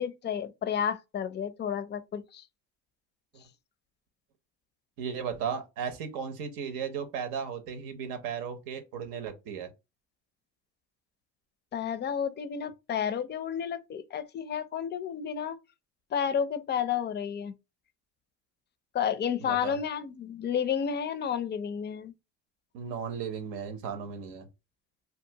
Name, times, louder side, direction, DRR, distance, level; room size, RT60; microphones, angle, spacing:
voice 1, 0.0-2.4 11.7-15.6 16.1-17.5 18.9-22.1, left 8 dB, 30° left, 0.4 m, -31 dB
voice 2, 5.0-9.7 19.4-19.8 22.7-24.5, right 7 dB, 85° right, 0.8 m, -35 dB
2.7 x 2.4 x 2.7 m
supercardioid pair, 90°, 35 cm